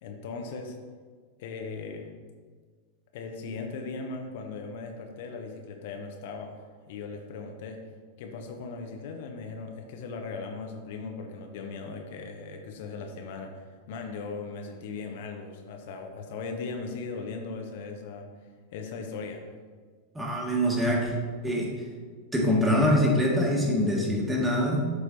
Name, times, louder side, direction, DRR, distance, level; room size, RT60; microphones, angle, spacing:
voice 1, 0.0-0.8 1.4-2.1 3.1-6.6 6.9-7.8 8.2-18.3 18.7-19.4, left 4 dB, 50° left, 3 dB, 0.8 m, -38 dB
voice 2, 20.1-21.1 21.4-21.7 22.3-24.9, equal, 10° right, -2 dB, 1.7 m, -24 dB
11.5 x 4.7 x 2.7 m, 1.5 s
figure-of-eight pair, 90°, 0 cm